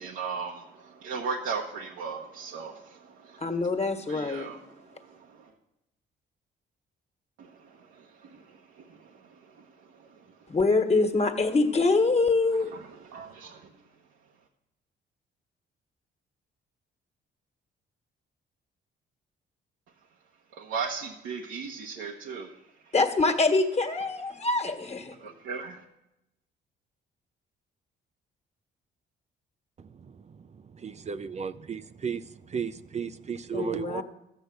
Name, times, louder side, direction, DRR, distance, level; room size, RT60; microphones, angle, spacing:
voice 1, 0.0-3.5 4.1-5.5 7.4-9.1 12.5-13.7 20.5-22.5 24.3-24.5 25.2-25.8, right 5 dB, 85° right, 1 dB, 1.1 m, -37 dB
voice 2, 3.4-4.5 10.5-12.7 22.9-25.1 33.5-34.0, left 3 dB, 30° left, 7 dB, 1.5 m, -24 dB
voice 3, 30.7-32.2 32.5-34.0, right 7 dB, 35° right, 12 dB, 0.5 m, -34 dB
13.0 x 8.0 x 6.7 m, 0.88 s
cardioid pair, 90°, 20 cm